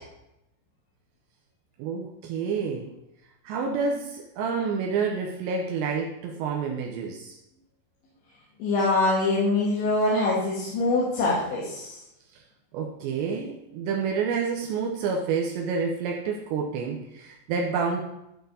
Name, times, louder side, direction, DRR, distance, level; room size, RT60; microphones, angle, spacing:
voice 1, 1.8-2.9 3.5-7.3 12.7-18.0, right 5 dB, 80° right, 1 dB, 2.9 m, -28 dB
voice 2, 8.6-12.0, left 2 dB, 80° left, -7 dB, 3.9 m, -24 dB
13.0 x 4.4 x 4.0 m, 0.86 s
omnidirectional pair, 5.3 m